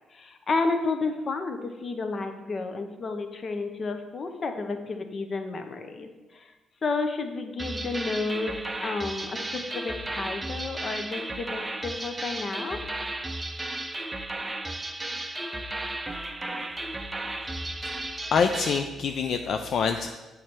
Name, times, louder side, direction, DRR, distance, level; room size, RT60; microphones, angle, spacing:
voice 1, 0.1-6.5 6.8-12.8, left 3 dB, 45° left, 6 dB, 0.7 m, -31 dB
sound 1, 7.6-18.9, right 2 dB, 15° right, 0.5 m, -34 dB
voice 2, 18.3-20.1, left 6 dB, 60° left, 5 dB, 0.3 m, -25 dB
8.5 x 3.2 x 4.3 m, 1.2 s
cardioid pair, 90°, 0 cm